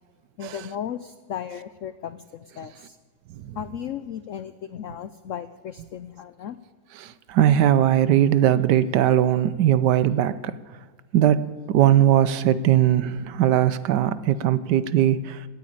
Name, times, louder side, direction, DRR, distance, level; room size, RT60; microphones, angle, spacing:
voice 1, 0.4-3.0 3.6-6.6, left 9 dB, 90° left, 0.6 m, -35 dB
voice 2, 7.0-10.5 11.1-11.4 11.7-15.5, right 11 dB, 70° right, 1.2 m, -20 dB
17.5 x 9.3 x 8.7 m
omnidirectional pair, 2.0 m